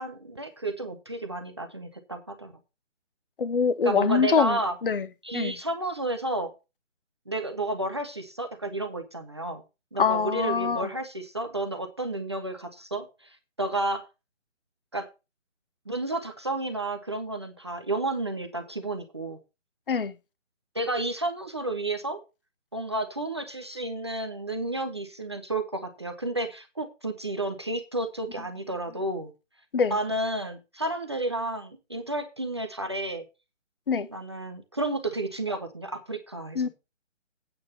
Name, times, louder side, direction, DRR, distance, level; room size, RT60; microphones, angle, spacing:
voice 1, 0.0-2.5 3.8-4.7 5.2-6.5 7.3-9.6 9.9-14.0 14.9-15.1 15.9-19.4 20.7-22.2 22.7-29.3 29.9-33.3 34.1-36.7, right 2 dB, 20° right, 0.7 m, -31 dB
voice 2, 3.4-5.1 5.3-5.5 10.0-10.9 19.9-20.1 29.7-29.9 33.9-34.1 36.6-36.7, left 6 dB, 45° left, 0.8 m, -24 dB
8.8 x 5.9 x 6.7 m
hypercardioid pair, 165°, 37 cm